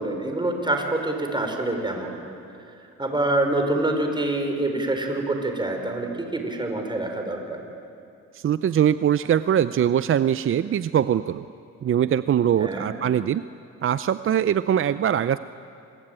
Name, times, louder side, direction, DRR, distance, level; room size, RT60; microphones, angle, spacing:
voice 1, 0.0-2.1 3.0-7.6 12.6-12.9, right 2 dB, 15° right, 4 dB, 4.6 m, -26 dB
voice 2, 8.3-11.4 11.8-13.4 13.8-15.4, right 9 dB, 45° right, 14 dB, 0.6 m, -22 dB
26.0 x 20.5 x 9.0 m, 2.7 s
cardioid pair, 90°, 30 cm